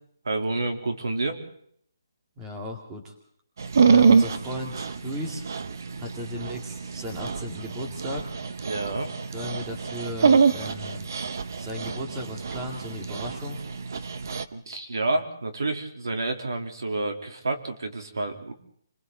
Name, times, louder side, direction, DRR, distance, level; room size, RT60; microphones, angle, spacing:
voice 1, 0.3-1.4 8.6-9.1 14.5-18.5, right 2 dB, 85° right, 4 dB, 3.5 m, -29 dB
voice 2, 2.4-3.1 3.8-5.4 6.0-8.3 9.3-11.1 11.6-13.6, left 1 dB, 10° right, 1 dB, 2.3 m, -36 dB
Dog, 3.6-14.4, right 5 dB, 50° right, 1.0 m, -25 dB
29.5 x 21.5 x 4.0 m, 0.64 s
hypercardioid pair, 170°, 2 cm